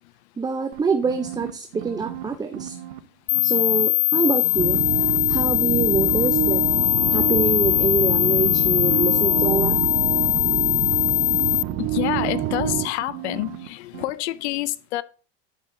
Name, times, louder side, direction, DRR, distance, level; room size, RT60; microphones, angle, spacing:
voice 1, 0.4-2.8 3.4-6.6 7.1-9.8, right 5 dB, 10° right, 0.6 m, -26 dB
sound 1, 0.7-3.0 3.3-5.4 5.7-7.2 8.0-13.7 13.9-14.1, right 12 dB, 80° right, 1.2 m, -37 dB
sound 2, 3.3-11.6, left 22 dB, 45° left, 0.6 m, -21 dB
sound 3, 4.5-12.9, right 13 dB, 40° right, 0.9 m, -27 dB
voice 2, 11.8-15.0, left 16 dB, 80° left, 0.7 m, -27 dB
10.0 x 7.6 x 3.8 m
supercardioid pair, 130°, 33 cm